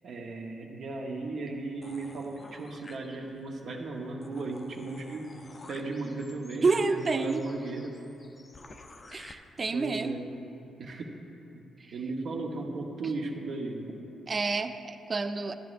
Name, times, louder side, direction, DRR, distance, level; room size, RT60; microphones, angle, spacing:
voice 1, 0.0-5.4 5.7-8.0 9.7-10.2 10.8-11.1 11.5-11.6 11.9-13.9, right 3 dB, 60° right, 0 dB, 0.9 m, -36 dB
sound 1, 1.8-3.5 3.9-4.0 4.2-9.3, left 2 dB, 25° left, 0.5 m, -52 dB
voice 2, 6.6-7.4 9.1-10.1 11.8-11.9 14.3-15.5, right 4 dB, 30° right, 10 dB, 0.3 m, -29 dB
13.0 x 11.0 x 2.5 m, 2.8 s
cardioid pair, 135°, 0 cm